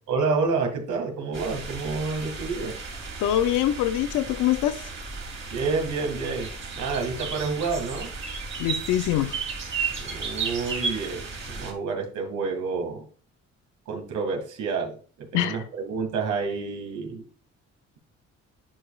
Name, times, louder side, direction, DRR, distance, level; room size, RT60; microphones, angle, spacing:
voice 1, 0.1-2.8 5.5-6.5 6.8-8.1 10.0-13.1 13.9-17.2, right 4 dB, 80° right, 2.1 m, -29 dB
sound 1, 1.3-11.7, right 4 dB, 40° right, 2.3 m, -34 dB
voice 2, 3.2-4.8 8.6-9.4 15.3-15.6, left 12 dB, 90° left, 0.6 m, -24 dB
10.0 x 4.9 x 2.4 m
cardioid pair, 90°, 30 cm